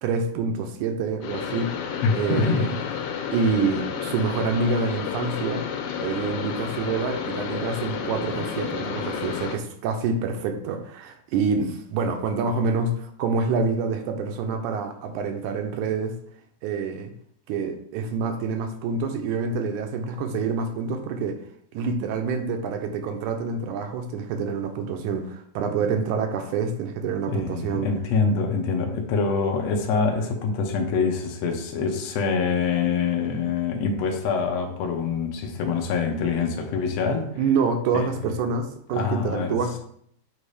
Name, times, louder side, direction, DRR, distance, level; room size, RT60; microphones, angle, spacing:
voice 1, 0.0-1.7 2.1-2.7 3.3-5.6 6.0-16.2 16.6-17.1 17.5-21.4 21.7-27.9 37.4-39.8, right 4 dB, 85° right, 5 dB, 2.2 m, -27 dB
sound 1, 1.2-9.6, left 7 dB, 85° left, 2.3 m, -31 dB
voice 2, 2.0-2.7 27.3-37.3 37.9-38.3 38.9-39.6, left 5 dB, 70° left, 2 dB, 1.9 m, -25 dB
8.2 x 2.8 x 4.8 m, 0.67 s
omnidirectional pair, 3.5 m